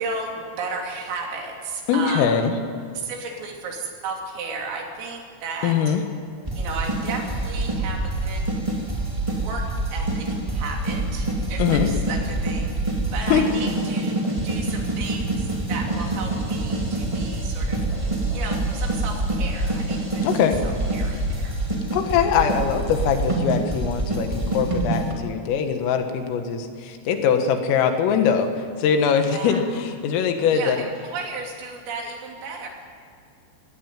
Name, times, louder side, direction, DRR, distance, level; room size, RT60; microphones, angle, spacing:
voice 1, 0.0-2.4 3.0-6.0 6.6-8.5 9.3-12.9 13.1-14.2 14.4-17.8 18.3-20.5 20.9-21.6 29.2-29.6 30.5-32.7, right 4 dB, 75° right, 1 dB, 5.8 m, -34 dB
voice 2, 1.9-2.5 5.6-6.0 11.6-11.9 13.3-13.5 20.2-20.6 21.9-30.8, left 7 dB, 80° left, 6 dB, 4.3 m, -22 dB
sound 1, 6.4-25.1, right 2 dB, 55° right, 0.3 m, -26 dB
21.0 x 18.5 x 9.3 m, 2.2 s
omnidirectional pair, 5.9 m